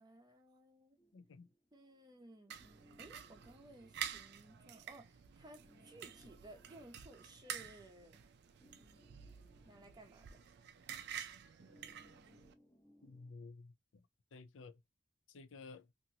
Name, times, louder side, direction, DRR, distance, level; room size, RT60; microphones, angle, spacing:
voice 1, 0.0-1.0 1.7-2.5 3.0-8.3 9.6-10.3, right 1 dB, 20° right, 0.6 m, -58 dB
sound 1, 1.0-13.3, equal, 15° left, 0.7 m, -69 dB
voice 2, 1.1-1.5 13.0-13.7 14.3-14.8 15.3-15.9, left 3 dB, 75° left, 0.5 m, -53 dB
sound 2, 2.5-12.5, right 9 dB, 60° right, 0.4 m, -49 dB
2.9 x 2.6 x 2.7 m
head